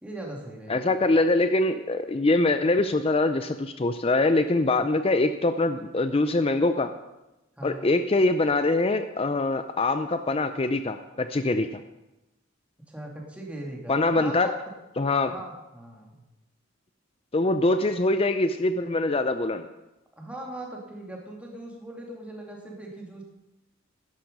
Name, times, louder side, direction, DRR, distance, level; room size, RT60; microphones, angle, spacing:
voice 1, 0.0-0.9 7.6-7.9 12.9-14.5 15.3-16.2 17.6-17.8 20.2-23.2, right 1 dB, 5° right, -1 dB, 2.5 m, -40 dB
voice 2, 0.7-6.9 7.6-11.8 13.9-14.5 15.0-15.3 17.3-19.7, left 2 dB, 30° left, 9 dB, 0.5 m, -23 dB
12.0 x 11.5 x 5.4 m, 0.97 s
head